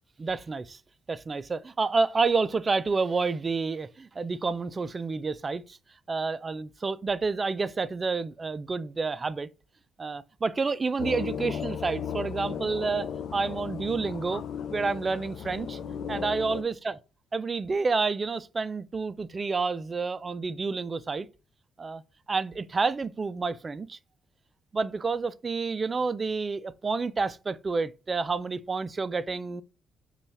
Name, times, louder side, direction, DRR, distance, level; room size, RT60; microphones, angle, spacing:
voice 1, 0.2-0.8 1.1-5.8 6.1-9.5 10.0-14.4 14.7-15.8 16.1-17.0 17.3-21.3 21.8-22.0 22.3-24.0 24.7-29.6, right 4 dB, 35° right, 0.3 m, -29 dB
sound 1, 11.0-16.6, left 8 dB, 65° left, 0.4 m, -35 dB
5.2 x 2.3 x 3.2 m
cardioid pair, 75°, 0 cm